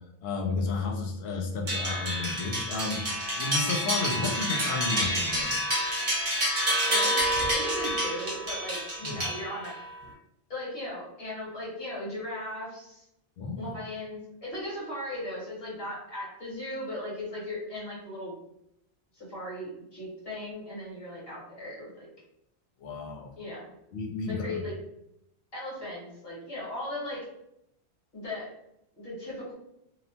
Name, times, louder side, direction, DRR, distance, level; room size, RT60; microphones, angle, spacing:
voice 1, 0.2-5.6 9.0-9.2 13.4-13.7 22.8-23.3 23.9-24.6, left 3 dB, 70° left, 1 dB, 0.8 m, -32 dB
sound 1, 1.7-9.8, equal, 35° right, 0.8 m, -28 dB
voice 2, 6.9-9.8 10.0-10.1 10.5-13.1 13.6-18.3 19.1-22.1 23.4-23.7 24.2-24.7 25.5-27.3 28.1-28.5 29.0-29.5, left 1 dB, 55° left, -7 dB, 1.5 m, -37 dB
2.8 x 2.1 x 2.7 m, 0.80 s
omnidirectional pair, 1.2 m